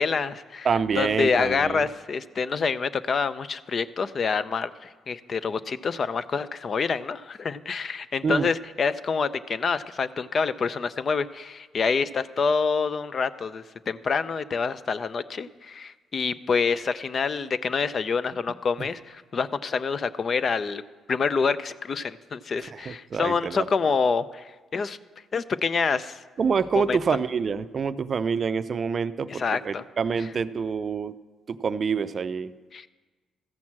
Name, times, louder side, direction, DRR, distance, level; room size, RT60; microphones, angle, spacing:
voice 1, 0.0-0.7 1.0-20.8 21.1-25.0 25.3-26.2 26.7-27.0 29.3-29.8 30.2-30.3 32.7-32.9, left 5 dB, 45° left, 15 dB, 0.5 m, -27 dB
voice 2, 0.6-1.8 8.2-8.5 22.9-23.7 26.4-31.1 31.5-32.5, right 6 dB, 45° right, 14 dB, 0.4 m, -26 dB
14.0 x 6.1 x 7.3 m, 1.3 s
cardioid pair, 90°, 0 cm